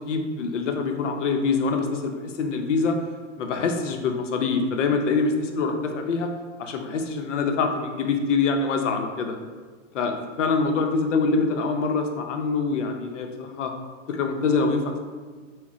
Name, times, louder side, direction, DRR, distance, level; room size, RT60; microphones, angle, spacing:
voice 1, 0.1-3.0 3.4-6.3 6.6-9.3 9.9-13.7 14.1-15.0, left 4 dB, 75° left, 4 dB, 0.7 m, -25 dB
4.9 x 2.1 x 4.2 m, 1.5 s
hypercardioid pair, 160°, 37 cm